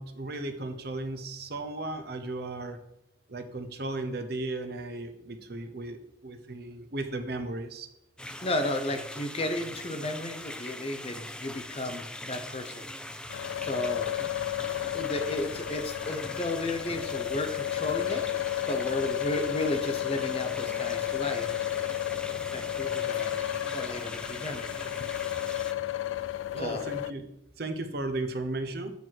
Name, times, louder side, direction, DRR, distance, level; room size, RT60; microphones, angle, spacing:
voice 1, 0.0-2.8 3.3-7.9 26.5-27.2 27.6-28.9, right 2 dB, 55° right, 8 dB, 0.8 m, -35 dB
sound 1, 8.2-25.7, left 1 dB, 5° left, 0.3 m, -42 dB
voice 2, 8.4-12.9 13.3-14.1 14.9-21.9 22.5-23.4 23.7-24.7 26.5-26.8, left 1 dB, 30° left, 6 dB, 0.8 m, -34 dB
sound 2, 13.3-27.1, left 12 dB, 85° left, 0.4 m, -32 dB
8.2 x 6.2 x 4.6 m, 0.85 s
head